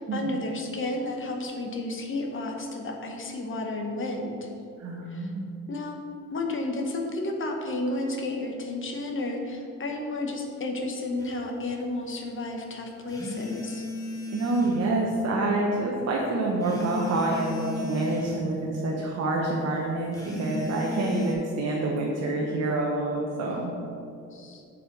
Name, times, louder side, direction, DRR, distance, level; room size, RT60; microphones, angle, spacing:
voice 1, 0.0-4.5 5.1-5.3 5.7-6.0 6.3-13.8 24.3-24.6, left 2 dB, 40° left, 2 dB, 1.0 m, -32 dB
voice 2, 4.8-5.5 14.3-23.7, right 2 dB, 55° right, -2 dB, 1.0 m, -27 dB
sound 1, 11.2-11.3 13.1-14.9 16.6-18.4 20.1-21.3, left 3 dB, 10° left, 1.3 m, -34 dB
5.0 x 5.0 x 6.0 m, 2.6 s
cardioid pair, 90°, 30 cm